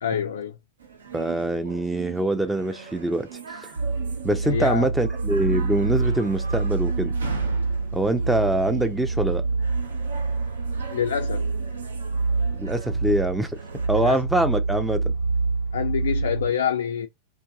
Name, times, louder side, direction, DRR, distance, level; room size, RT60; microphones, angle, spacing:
voice 1, 0.0-0.6 4.4-4.9 10.9-11.5 13.9-14.2 15.7-17.1, left 8 dB, 65° left, 0.4 m, -26 dB
sound 1, 0.8-13.9, right 7 dB, 70° right, 0.8 m, -40 dB
voice 2, 1.1-3.3 3.6-3.7 4.2-7.1 7.9-9.4 12.6-13.6 13.9-15.1, right 1 dB, 5° right, 0.5 m, -24 dB
sound 2, 3.8-16.5, right 3 dB, 90° right, 1.4 m, -26 dB
2.6 x 2.5 x 3.6 m
figure-of-eight pair, 90°, 0 cm